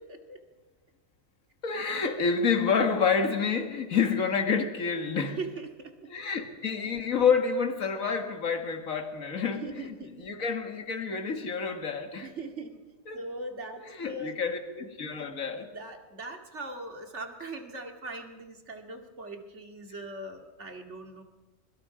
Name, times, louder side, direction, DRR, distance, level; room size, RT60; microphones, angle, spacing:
voice 1, 1.6-5.4 6.1-12.3 13.1-13.2 13.8-15.7, left 5 dB, 70° left, 2.2 m, -28 dB
voice 2, 5.4-5.9 9.5-10.3 12.2-12.7 13.1-14.4 15.5-21.2, right 2 dB, 55° right, 2.5 m, -40 dB
25.0 x 23.5 x 5.0 m
omnidirectional pair, 1.5 m